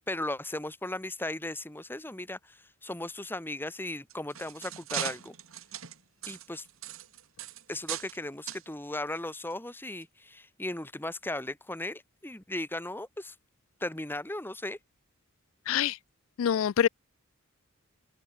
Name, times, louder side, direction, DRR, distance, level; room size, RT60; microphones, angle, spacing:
voice 1, 0.1-2.6 2.8-5.3 6.3-6.6 7.7-13.3 13.8-14.8, left 1 dB, 10° left, 1.6 m, -36 dB
sound 1, 3.9-8.2 8.5-8.6 9.4-9.5 10.0-10.1, right 10 dB, 75° right, 1.9 m, -39 dB
voice 2, 15.7-16.0 16.4-16.9, left 9 dB, 70° left, 0.3 m, -25 dB
open air
head